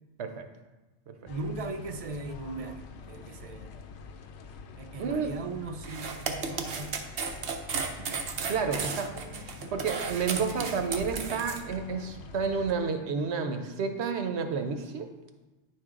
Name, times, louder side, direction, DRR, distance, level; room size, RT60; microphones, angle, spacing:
sound 1, 1.3-12.8, left 4 dB, 90° left, 0.9 m, -46 dB
voice 1, 1.3-3.9 4.8-7.1 9.1-9.7, right 3 dB, 45° right, 0.5 m, -39 dB
sound 2, 5.8-11.6, right 5 dB, 65° right, 0.9 m, -34 dB
voice 2, 8.5-9.1 9.7-15.1, right 5 dB, 90° right, 1.0 m, -30 dB
9.8 x 4.6 x 3.7 m
omnidirectional pair, 1.1 m